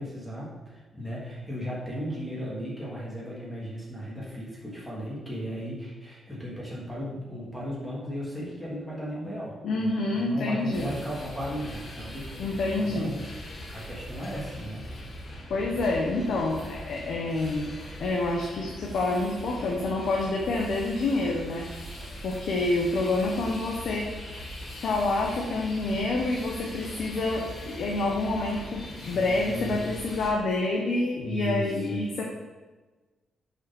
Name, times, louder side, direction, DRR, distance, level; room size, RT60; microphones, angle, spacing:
voice 1, 0.0-12.5 12.7-13.3 13.7-14.9 29.0-29.8 31.2-32.1, equal, 5° left, -6 dB, 3.2 m, -36 dB
voice 2, 9.6-10.9 12.4-13.1 15.5-17.7 18.0-21.7 22.2-24.1 24.8-32.2, left 2 dB, 70° left, -1 dB, 1.3 m, -27 dB
sound 1, 10.7-30.3, left 1 dB, 40° left, 1.8 m, -41 dB
8.0 x 5.8 x 5.4 m, 1.3 s
cardioid pair, 95°, 0 cm